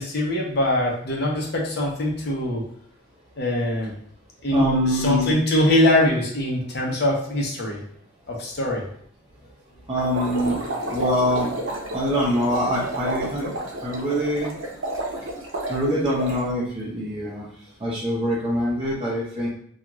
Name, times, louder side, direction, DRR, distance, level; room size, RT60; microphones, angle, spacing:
voice 1, 0.0-2.6 3.4-4.0 4.4-4.6 4.9-7.8 8.3-8.9, left 1 dB, 55° left, -1 dB, 0.7 m, -22 dB
voice 2, 4.5-5.4 9.9-10.6 10.9-11.5 11.9-13.5 13.8-14.5 15.7-17.5 17.8-19.5, equal, 30° right, -7 dB, 0.6 m, -24 dB
sound 1, 10.0-16.4, right 1 dB, 80° right, 0.6 m, -31 dB
2.4 x 2.3 x 3.0 m, 0.65 s
head